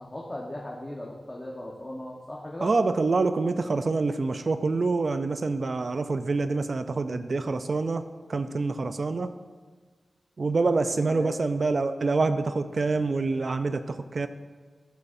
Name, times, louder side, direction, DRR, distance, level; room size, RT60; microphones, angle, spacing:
voice 1, 0.0-2.7 11.0-11.4, left 1 dB, 20° left, -2 dB, 1.1 m, -38 dB
voice 2, 2.6-9.3 10.4-14.3, right 3 dB, 55° right, 10 dB, 0.4 m, -26 dB
14.0 x 8.1 x 2.7 m, 1.5 s
wide cardioid pair, 85°, 0 cm